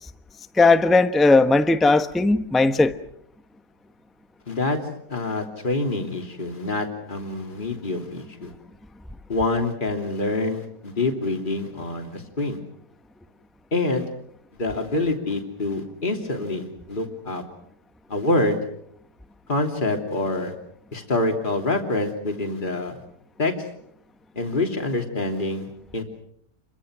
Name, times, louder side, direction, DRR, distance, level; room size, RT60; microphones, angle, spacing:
voice 1, 0.6-2.9, left 3 dB, ahead, 0.9 m, -17 dB
voice 2, 4.5-4.8 5.1-8.5 9.3-12.6 13.7-14.1 14.6-17.4 18.1-18.6 19.5-20.5 20.9-23.0 23.4-23.5 24.3-26.0, left 2 dB, 30° left, 3.2 m, -26 dB
29.5 x 24.0 x 6.3 m
omnidirectional pair, 1.6 m